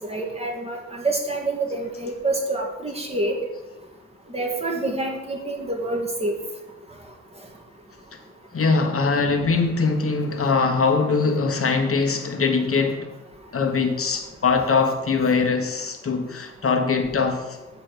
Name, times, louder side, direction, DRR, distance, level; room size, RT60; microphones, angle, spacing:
voice 1, 0.0-3.4 4.3-6.3, right 2 dB, 20° right, 1.9 m, -27 dB
voice 2, 8.5-13.1 13.5-17.6, left 4 dB, 50° left, 1.3 m, -22 dB
7.6 x 5.0 x 6.4 m
cardioid pair, 80°, 29 cm